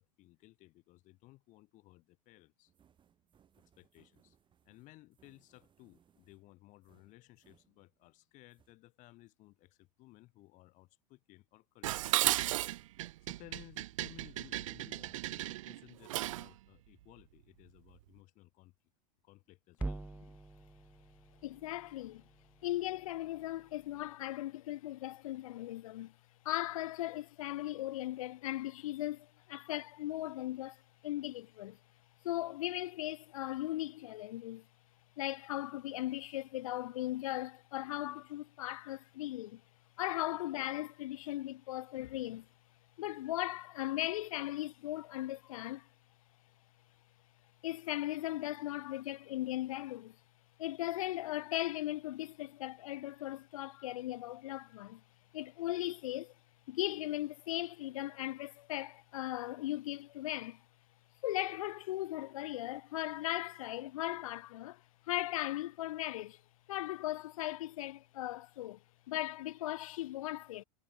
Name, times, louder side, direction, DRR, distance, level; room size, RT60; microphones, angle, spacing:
voice 1, 0.0-2.7 3.6-4.4 4.7-12.4 13.2-18.7 19.2-20.0, left 19 dB, 35° left, 3.5 m, -59 dB
sound 1, 2.7-8.2 8.5-8.7, right 8 dB, 20° right, 7.6 m, -71 dB
Dishes pots and pans, 11.8-16.5, right 16 dB, 50° right, 0.5 m, -35 dB
sound 2, 19.7-24.1, right 3 dB, 5° right, 1.4 m, -46 dB
voice 2, 21.4-22.2 22.6-26.1 26.4-31.8 32.2-34.6 35.2-39.6 40.0-42.5 43.0-45.9 47.6-50.2 50.6-55.0 55.3-56.3 56.7-60.6 61.2-66.4 66.7-68.8 69.1-70.6, left 15 dB, 55° left, 0.7 m, -38 dB
figure-of-eight pair, 90°, 21 cm